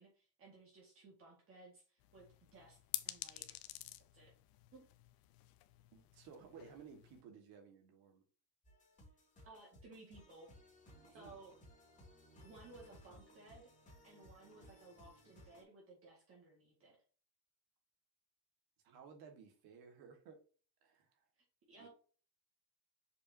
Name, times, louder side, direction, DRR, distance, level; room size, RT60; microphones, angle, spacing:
voice 1, 0.0-2.3 2.5-2.8 3.0-3.6 4.1-4.3 4.7-4.8 9.4-10.5 11.1-11.5 12.4-13.7 14.0-17.0 21.7-21.9, right 3 dB, 35° right, 1.9 m, -58 dB
sound 1, 2.0-7.2, left 16 dB, 65° left, 0.7 m, -49 dB
voice 2, 5.9-8.2 10.9-11.4 18.8-20.4 20.8-21.3 21.8-21.9, right 6 dB, 65° right, 1.9 m, -57 dB
sound 2, 8.6-15.6, equal, 20° left, 2.5 m, -61 dB
6.6 x 5.1 x 2.8 m
cardioid pair, 180°, 39 cm